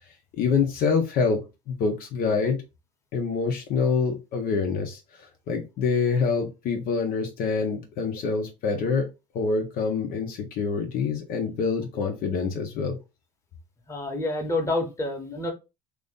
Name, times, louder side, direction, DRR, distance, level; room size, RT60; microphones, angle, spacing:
voice 1, 0.3-2.6 3.1-9.1 9.3-13.0, left 5 dB, 55° left, 0.8 m, -26 dB
voice 2, 13.9-15.5, left 2 dB, 15° left, 1.2 m, -28 dB
3.0 x 2.6 x 3.7 m
cardioid pair, 125°, 18 cm